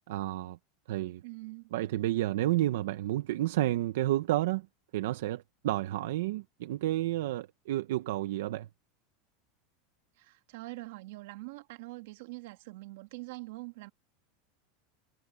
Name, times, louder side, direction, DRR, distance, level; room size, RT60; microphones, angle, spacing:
voice 1, 0.1-0.6 0.9-1.2 1.7-4.7 4.9-8.7, right 15 dB, 80° right, 0.9 m, -30 dB
voice 2, 1.2-1.7 10.2-13.9, right 22 dB, 65° right, 2.0 m, -44 dB
supercardioid pair, 170°, 0 cm